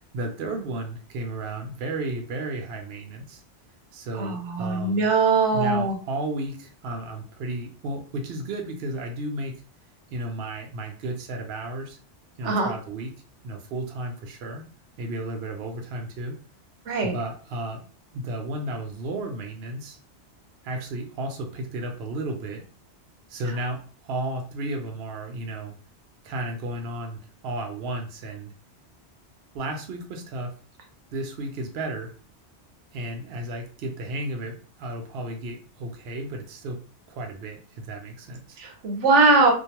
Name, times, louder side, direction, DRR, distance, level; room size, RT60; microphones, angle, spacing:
voice 1, 0.1-3.4 3.9-5.1 5.5-9.6 10.1-12.0 12.4-13.1 13.4-14.6 15.0-16.4 17.0-17.8 18.1-20.0 20.6-22.6 23.3-25.7 26.2-28.5 29.5-30.5 31.1-32.1 32.9-36.8 37.1-38.6, right 2 dB, 65° right, 3 dB, 0.8 m, -33 dB
voice 2, 4.2-5.9 12.4-12.7 16.9-17.1 38.6-39.5, right 3 dB, 90° right, 3 dB, 1.0 m, -21 dB
2.5 x 2.2 x 2.8 m, 0.38 s
omnidirectional pair, 1.2 m